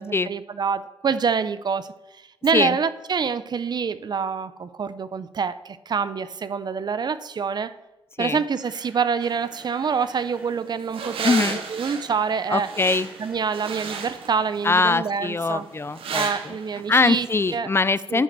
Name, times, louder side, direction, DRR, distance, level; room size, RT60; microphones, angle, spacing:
voice 1, 0.0-1.9 2.4-7.7 8.2-12.7 13.2-15.6 16.1-17.3 17.5-17.7 18.1-18.2, right 6 dB, 50° right, 15 dB, 0.6 m, -26 dB
Camera, 8.5-10.6 11.4-13.7 13.9-14.1 14.5-14.6, right 1 dB, 15° right, 2.9 m, -51 dB
sound 1, 9.2-17.6, right 5 dB, 80° right, 1.2 m, -35 dB
voice 2, 11.2-11.6 12.5-13.1 14.6-16.5 16.9-18.2, left 3 dB, 25° left, 16 dB, 0.4 m, -22 dB
10.5 x 5.1 x 6.7 m, 0.99 s
cardioid pair, 65°, 9 cm